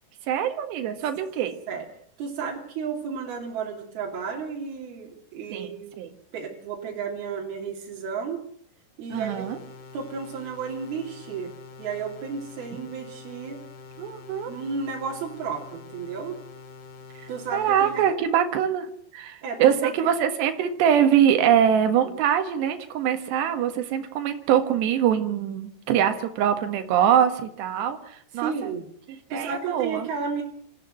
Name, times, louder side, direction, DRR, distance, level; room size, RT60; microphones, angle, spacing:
voice 1, 0.2-1.6 5.5-6.2 9.1-9.6 12.7-12.8 14.0-14.5 17.2-28.7 29.3-30.1, right 9 dB, 85° right, 7 dB, 3.9 m, -23 dB
voice 2, 2.2-5.9 6.3-8.4 9.0-9.5 9.9-11.5 11.8-13.6 14.5-16.4 17.3-17.9 19.4-19.6 28.4-30.4, right 5 dB, 65° right, -2 dB, 4.8 m, -33 dB
sound 1, 9.1-18.1, left 5 dB, 80° left, 5.2 m, -45 dB
26.5 x 14.5 x 7.9 m, 0.63 s
omnidirectional pair, 4.8 m